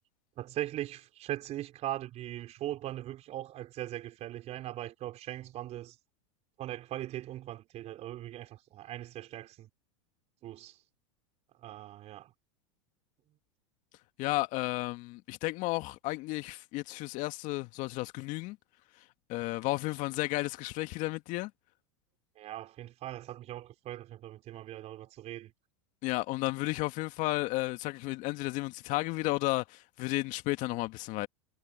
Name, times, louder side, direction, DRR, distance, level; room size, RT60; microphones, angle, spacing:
voice 1, 0.4-5.9 6.6-9.7 10.4-10.7 11.6-12.3 22.4-25.5, right 13 dB, 40° right, 4.5 m, -40 dB
voice 2, 14.2-18.6 19.3-21.5 26.0-31.3, left 20 dB, 50° left, 1.9 m, -33 dB
hypercardioid pair, 100°, 17 cm